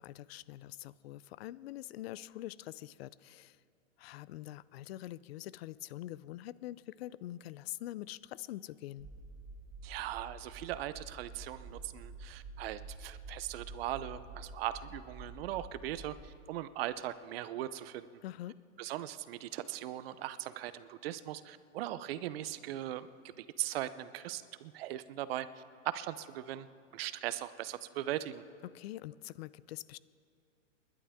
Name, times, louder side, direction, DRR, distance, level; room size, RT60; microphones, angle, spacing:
voice 1, 0.0-3.6 4.0-9.1 18.2-18.5 28.6-30.0, left 15 dB, 50° left, 19 dB, 0.5 m, -44 dB
sound 1, 9.0-16.3, right 2 dB, 15° right, 0.6 m, -49 dB
voice 2, 9.8-18.1 18.8-23.1 23.4-26.7 26.9-28.4, right 13 dB, 50° right, 14 dB, 0.7 m, -39 dB
30.0 x 11.5 x 3.6 m, 2.6 s
hypercardioid pair, 140°, 39 cm